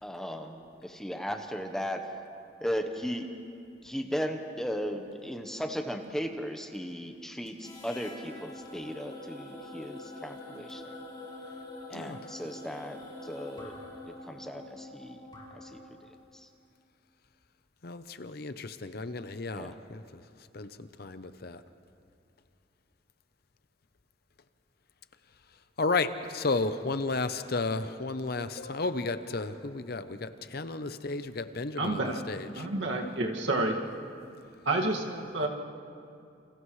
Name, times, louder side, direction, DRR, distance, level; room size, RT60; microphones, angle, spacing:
voice 1, 0.0-2.1 2.6-3.3 3.8-10.8 11.9-13.7 14.2-15.2 15.5-15.8 16.3-16.5 19.5-19.8, equal, 5° left, 4 dB, 1.0 m, -36 dB
sound 1, 7.6-16.0, left 2 dB, 25° left, 4.8 m, -45 dB
voice 2, 17.8-20.2 20.5-21.6 25.8-32.7, left 3 dB, 55° left, 10 dB, 0.8 m, -33 dB
voice 3, 31.8-32.2 32.5-33.8 34.7-35.5, right 2 dB, 80° right, 0 dB, 2.1 m, -29 dB
29.0 x 28.0 x 3.3 m, 2.5 s
head